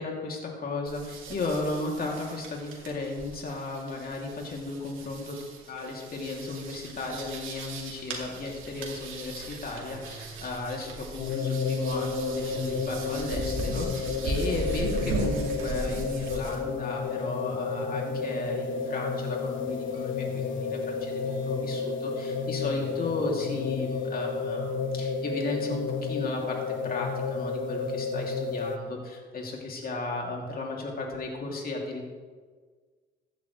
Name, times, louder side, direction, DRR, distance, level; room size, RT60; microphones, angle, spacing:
voice 1, 0.0-32.1, left 3 dB, 50° left, -1 dB, 2.8 m, -35 dB
sound 1, 0.9-16.6, right 2 dB, 80° right, 2.4 m, -37 dB
sound 2, 9.9-25.5, right 3 dB, 50° right, 3.1 m, -51 dB
sound 3, 11.2-28.8, left 5 dB, 75° left, 1.0 m, -31 dB
15.0 x 10.0 x 3.3 m, 1.5 s
cardioid pair, 90°, 20 cm